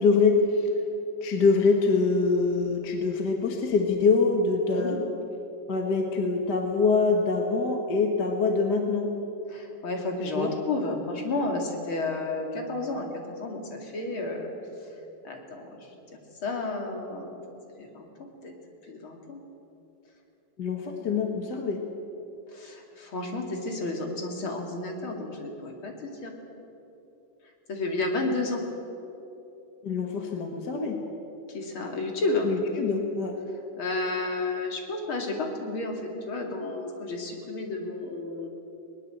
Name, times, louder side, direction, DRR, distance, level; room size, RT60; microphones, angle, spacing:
voice 1, 0.0-0.7 1.2-5.0 5.7-9.1 10.3-10.5 20.6-21.9 29.8-31.0 32.4-33.3, left 4 dB, 50° left, 3 dB, 2.0 m, -24 dB
voice 2, 9.5-14.5 15.2-15.9 16.4-18.5 18.9-19.4 20.9-21.2 22.5-26.3 27.7-28.6 31.5-32.5 33.8-38.5, left 2 dB, 70° left, 2 dB, 3.4 m, -32 dB
20.5 x 20.0 x 7.9 m, 2.9 s
omnidirectional pair, 2.4 m